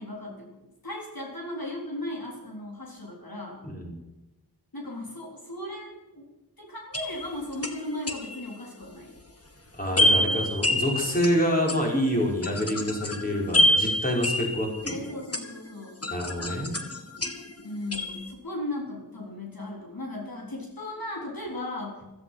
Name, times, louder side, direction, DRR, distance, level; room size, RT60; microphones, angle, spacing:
voice 1, 0.0-3.6 4.7-6.3 6.6-9.1 14.9-16.0 17.6-22.0, left 1 dB, 60° left, -2 dB, 4.1 m, -36 dB
sound 1, 6.9-8.5 10.0-15.7 16.0-17.6 17.9-18.3, left 1 dB, 35° left, 1.9 m, -27 dB
voice 2, 9.7-15.0 16.1-16.7, equal, 20° left, -2 dB, 5.2 m, -27 dB
16.0 x 14.0 x 5.8 m, 1.0 s
wide cardioid pair, 55°, 40 cm